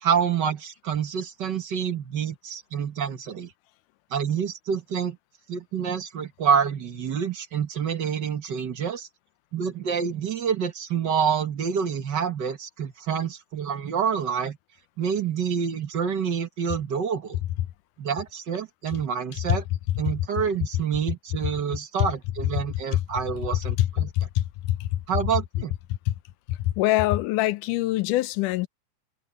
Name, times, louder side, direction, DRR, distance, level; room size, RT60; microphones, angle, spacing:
voice 1, 0.0-3.5 4.1-5.2 5.5-9.1 9.5-14.6 15.0-17.4 18.0-19.6 20.0-24.1 25.1-25.7, right 7 dB, 50° right, 1.4 m, -27 dB
voice 2, 23.8-24.9 26.1-26.2 26.5-28.7, left 15 dB, 85° left, 2.2 m, -24 dB
omnidirectional pair, 3.6 m